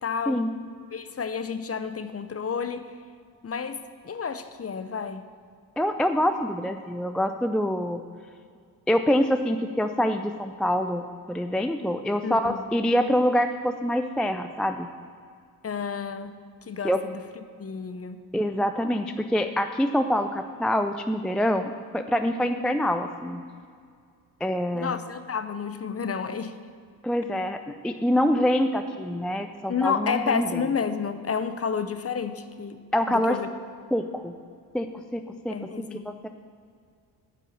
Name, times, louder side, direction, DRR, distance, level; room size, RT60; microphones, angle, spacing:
voice 1, 0.0-0.5 0.9-2.9 3.4-5.3 12.2-12.6 15.6-17.2 17.6-18.2 24.7-26.5 29.7-32.8 33.1-33.5 35.5-36.1, left 6 dB, 30° left, 11 dB, 0.7 m, -30 dB
voice 2, 5.8-8.0 8.9-14.9 16.8-17.0 18.3-23.4 24.4-24.9 27.0-30.5 32.9-33.4 33.9-34.3 34.7-34.9 35.1-36.3, equal, ahead, 7 dB, 0.4 m, -25 dB
9.5 x 5.4 x 7.4 m, 2.2 s
hypercardioid pair, 45°, 49 cm